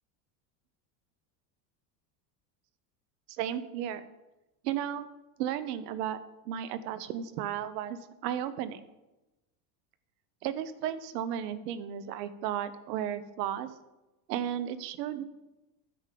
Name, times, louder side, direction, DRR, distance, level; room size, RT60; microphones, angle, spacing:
voice 1, 3.4-4.0 4.6-5.1 5.4-6.2 6.4-8.8 10.4-13.7 14.3-15.2, right 10 dB, 80° right, 13 dB, 1.0 m, -34 dB
9.9 x 5.0 x 7.5 m, 1.0 s
cardioid pair, 175°, 48 cm